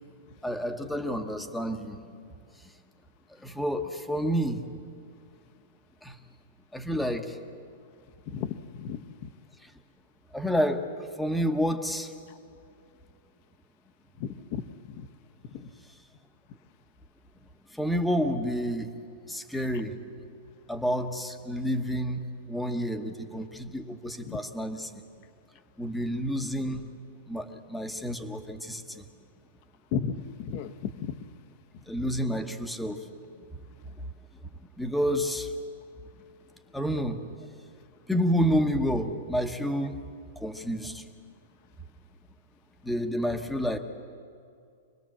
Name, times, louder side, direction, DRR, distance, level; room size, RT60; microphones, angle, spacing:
voice 1, 0.4-2.0 3.4-4.6 6.0-6.2 6.7-7.4 10.3-10.8 11.2-12.1 17.7-18.9 19.3-19.9 20.7-25.0 25.8-26.9 27.3-29.0 31.9-33.1 34.8-35.5 36.7-37.2 38.1-40.0 40.4-41.0 42.8-43.8, equal, ahead, 6 dB, 1.1 m, -29 dB
voice 2, 8.3-9.3 12.3-12.4 14.2-14.6 14.9-15.1 15.5-15.7 24.2-24.4 29.9-31.1, left 7 dB, 35° left, 10 dB, 1.0 m, -34 dB
26.0 x 20.0 x 7.5 m, 2.3 s
supercardioid pair, 170°, 0 cm